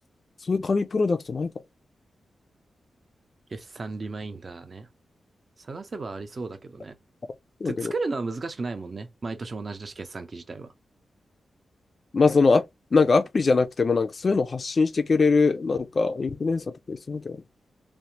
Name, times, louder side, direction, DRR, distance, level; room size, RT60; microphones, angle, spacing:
voice 1, 0.5-1.5 7.6-7.9 12.1-12.6 12.9-17.4, left 4 dB, 50° left, 0.4 m, -22 dB
voice 2, 3.5-4.9 5.6-7.0 7.6-10.7, right 3 dB, 45° right, 0.6 m, -34 dB
3.1 x 2.1 x 2.8 m
cardioid pair, 70°, 0 cm